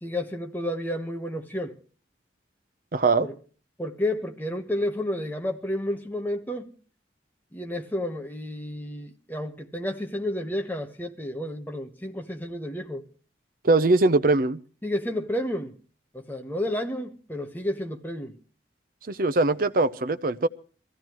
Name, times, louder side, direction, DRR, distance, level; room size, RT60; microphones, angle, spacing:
voice 1, 0.0-1.8 3.2-3.4 3.8-6.7 7.5-13.0 14.8-15.8 16.1-18.4, left 1 dB, 10° left, 1.2 m, -31 dB
voice 2, 2.9-3.3 13.6-14.6 19.1-20.5, right 3 dB, 50° right, 0.7 m, -21 dB
23.0 x 15.0 x 3.0 m
head